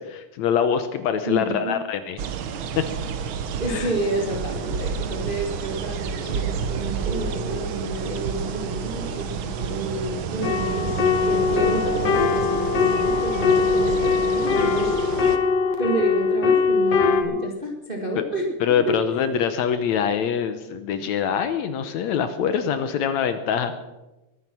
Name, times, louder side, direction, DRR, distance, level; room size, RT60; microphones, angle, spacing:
voice 1, 0.0-2.2 2.8-2.9 3.7-3.9 17.2-17.3 18.6-23.7, left 8 dB, 70° left, 10 dB, 2.0 m, -24 dB
voice 2, 1.2-1.8 3.6-15.4 15.8-18.5 18.9-19.0, right 1 dB, 25° right, 1 dB, 1.4 m, -30 dB
sound 1, 2.2-15.4, right 6 dB, 85° right, 1.1 m, -29 dB
sound 2, 10.4-17.2, left 5 dB, 55° left, 2.6 m, -21 dB
22.0 x 9.6 x 6.0 m, 1.0 s
omnidirectional pair, 3.6 m